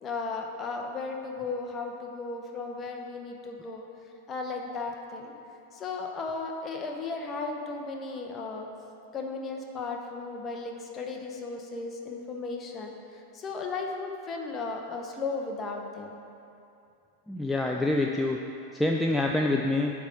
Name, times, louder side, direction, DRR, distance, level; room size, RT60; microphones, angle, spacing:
voice 1, 0.0-3.8 4.3-5.3 5.7-8.7 9.1-16.2, left 3 dB, 25° left, 2 dB, 0.9 m, -35 dB
voice 2, 17.3-18.4 18.7-19.9, left 2 dB, 5° left, 0 dB, 0.4 m, -26 dB
9.3 x 3.5 x 6.3 m, 2.6 s
figure-of-eight pair, 90°, 0 cm